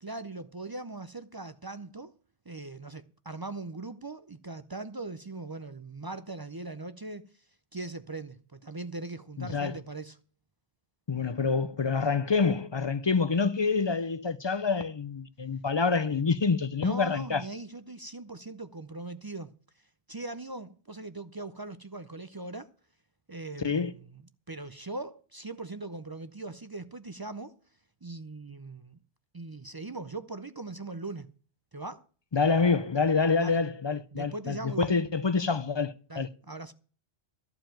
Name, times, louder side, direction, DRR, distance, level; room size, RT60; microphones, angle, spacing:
voice 1, 0.0-2.1 2.5-7.3 7.7-10.2 16.8-19.5 20.1-22.7 23.3-24.2 24.5-27.6 28.0-29.0 29.3-31.3 31.7-32.0 33.4-33.6 34.1-34.9 36.1-36.7, right 2 dB, 35° right, 0.3 m, -40 dB
voice 2, 9.4-9.8 11.1-17.4 23.6-23.9 32.3-36.3, left 4 dB, 40° left, 0.4 m, -27 dB
14.0 x 4.9 x 8.9 m
omnidirectional pair, 1.1 m